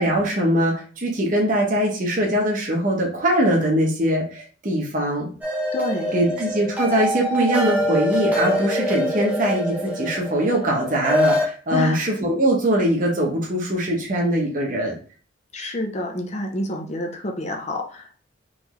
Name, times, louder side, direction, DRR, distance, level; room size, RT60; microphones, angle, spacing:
voice 1, 0.0-5.3 6.1-14.9, right 1 dB, 45° right, -1 dB, 1.0 m, -22 dB
sound 1, 5.4-11.4, equal, 10° right, 0.9 m, -24 dB
voice 2, 5.7-6.2 11.7-12.1 15.5-18.2, left 1 dB, 35° left, 2 dB, 0.7 m, -28 dB
3.9 x 3.3 x 3.1 m, 0.40 s
head